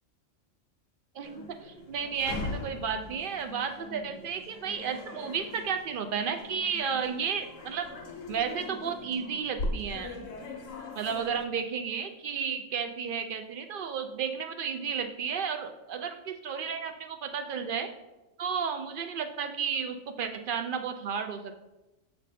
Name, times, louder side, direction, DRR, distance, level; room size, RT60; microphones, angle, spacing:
voice 1, 1.1-7.9 8.3-10.3 11.0-17.9 18.4-21.6, right 6 dB, 65° right, 7 dB, 0.5 m, -33 dB
sound 1, 1.2-11.5, left 2 dB, 75° left, 1.2 m, -40 dB
7.3 x 3.3 x 4.1 m, 1.0 s
omnidirectional pair, 1.4 m